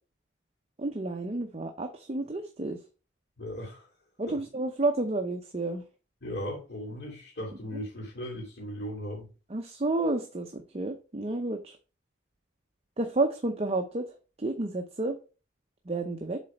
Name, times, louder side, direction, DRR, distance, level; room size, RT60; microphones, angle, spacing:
voice 1, 0.8-2.8 4.2-5.8 9.5-11.8 13.0-15.2 15.9-16.4, right 2 dB, 30° right, 5 dB, 0.6 m, -30 dB
voice 2, 3.4-3.9 4.3-4.4 6.2-9.3, equal, 55° left, -5 dB, 2.6 m, -37 dB
7.4 x 3.9 x 4.3 m, 0.34 s
head